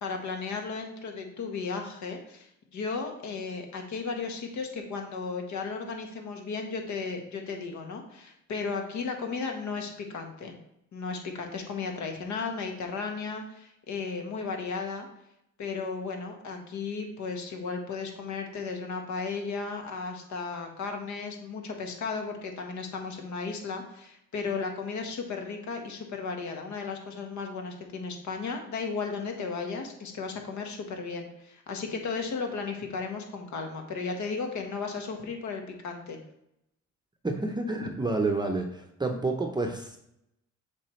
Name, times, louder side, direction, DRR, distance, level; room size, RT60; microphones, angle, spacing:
voice 1, 0.0-2.5 2.7-10.5 10.9-15.1 15.6-36.2, left 4 dB, 70° left, 3 dB, 1.4 m, -35 dB
voice 2, 37.2-40.0, right 3 dB, 15° right, 3 dB, 0.7 m, -29 dB
7.1 x 4.7 x 3.1 m, 0.77 s
cardioid pair, 90°, 30 cm